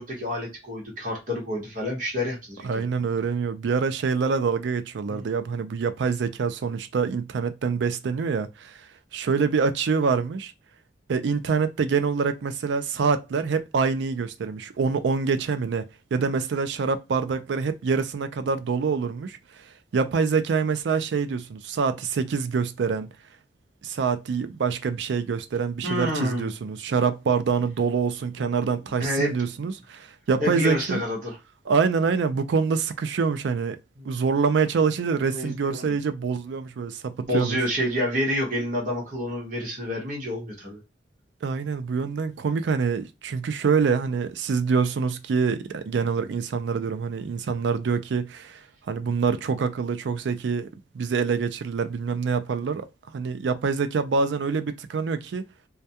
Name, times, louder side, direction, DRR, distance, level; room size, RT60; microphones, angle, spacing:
voice 1, 0.0-2.8 5.1-5.2 25.8-26.5 28.4-28.7 28.9-29.3 30.4-31.4 34.0-34.1 35.3-36.0 37.3-40.8, equal, 45° right, 1.0 m, -28 dB
voice 2, 2.6-8.8 9.1-10.5 11.1-19.4 19.9-23.1 23.8-31.0 31.7-33.8 34.1-37.6 41.4-48.6 48.9-50.7 50.9-52.9 53.1-55.4, right 5 dB, 80° right, 0.4 m, -25 dB
2.3 x 2.2 x 2.6 m
head